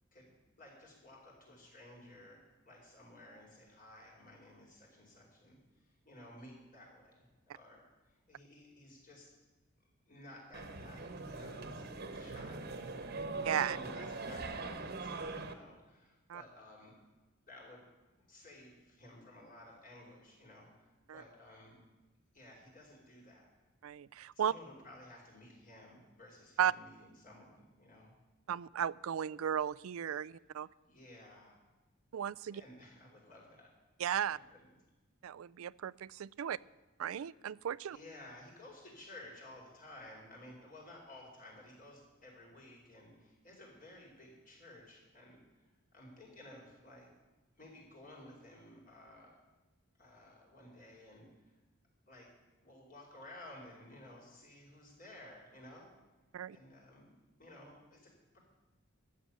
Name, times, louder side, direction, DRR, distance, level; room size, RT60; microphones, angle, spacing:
voice 1, 0.6-7.8 8.1-9.3 10.1-11.8 12.1-13.2 13.7-16.9 17.5-17.8 18.3-21.7 22.3-23.5 24.3-28.1 30.8-31.6 32.5-33.7 34.3-34.7 37.9-45.7 45.9-47.1 47.6-49.3 50.0-51.2 52.1-52.3 52.6-55.9 56.5-57.1 57.4-58.4, left 1 dB, 40° left, -2 dB, 5.0 m, -55 dB
sound 1, 10.5-15.5, right 3 dB, 50° right, 1.2 m, -41 dB
voice 2, 13.4-13.8 16.3-16.4 21.1-21.2 23.8-24.5 26.6-26.7 28.5-30.7 32.1-32.6 34.0-34.4 35.2-36.6 37.0-38.0 56.3-56.6, right 9 dB, 85° right, 18 dB, 0.4 m, -35 dB
13.5 x 7.7 x 9.8 m, 1.2 s
head